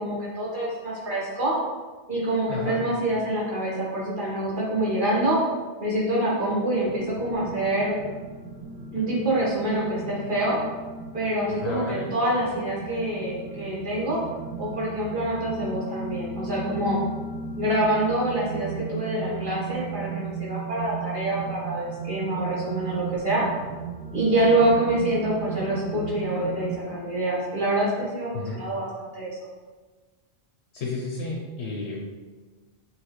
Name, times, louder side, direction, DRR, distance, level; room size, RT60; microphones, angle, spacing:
voice 1, 0.0-1.5 2.1-5.4 5.8-8.0 8.9-10.6 11.1-14.2 14.6-17.0 17.6-23.4 24.1-28.8 29.1-29.3, right 1 dB, 50° right, -6 dB, 1.5 m, -26 dB
voice 2, 2.5-2.8 11.5-12.1 28.3-28.7 30.7-32.0, left 3 dB, 85° left, -1 dB, 1.0 m, -32 dB
sound 1, 6.8-26.8, right 5 dB, 85° right, 1.0 m, -36 dB
5.5 x 3.0 x 3.1 m, 1.3 s
omnidirectional pair, 1.1 m